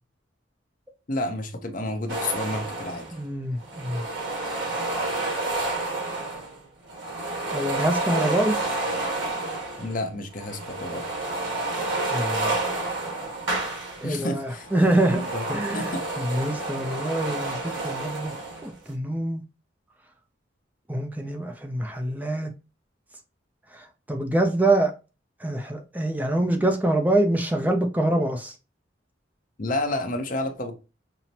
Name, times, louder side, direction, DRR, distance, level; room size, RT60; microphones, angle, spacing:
voice 1, 1.1-3.0 9.8-11.0 14.0-14.7 15.1-15.4 15.7-16.0 29.6-30.7, left 2 dB, 45° left, 0.7 m, -30 dB
sound 1, 2.1-3.2 3.6-6.6 6.9-10.0 10.3-14.2 14.5-18.8, right 2 dB, 70° right, 1.3 m, -30 dB
voice 2, 3.1-4.0 7.5-8.6 12.1-12.6 14.0-15.2 15.5-18.3 18.6-19.4 20.9-22.5 23.7-24.9 25.4-28.6, right 1 dB, 10° right, 0.4 m, -25 dB
5.6 x 2.0 x 2.7 m
head